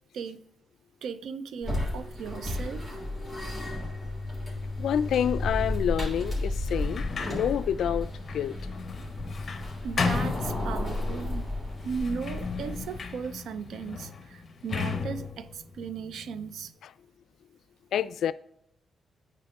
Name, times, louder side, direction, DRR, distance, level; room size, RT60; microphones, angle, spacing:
voice 1, 1.0-2.9 9.8-11.5 11.8-16.7, right 6 dB, 80° right, 0.5 m, -37 dB
sound 1, 1.6-13.0, left 1 dB, 20° right, 3.1 m, -33 dB
voice 2, 4.8-8.6 17.9-18.3, left 9 dB, 80° left, 0.3 m, -28 dB
Sliding door, 6.7-11.2 11.8-16.7, left 5 dB, 40° left, 0.9 m, -35 dB
9.6 x 4.6 x 3.5 m
cardioid pair, 115°, 0 cm